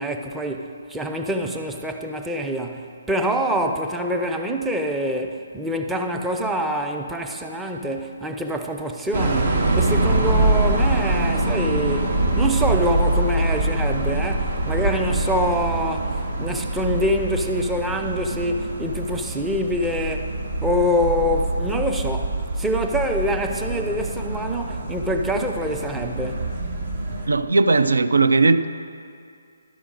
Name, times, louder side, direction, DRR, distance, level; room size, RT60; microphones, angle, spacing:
voice 1, 0.0-20.4 20.6-26.5, equal, 5° right, 0.5 m, -25 dB
sound 1, 9.1-27.3, right 2 dB, 65° right, 1.4 m, -24 dB
voice 2, 27.3-28.7, right 3 dB, 85° right, 0.4 m, -17 dB
12.0 x 5.0 x 6.5 m
hypercardioid pair, 150°, 0 cm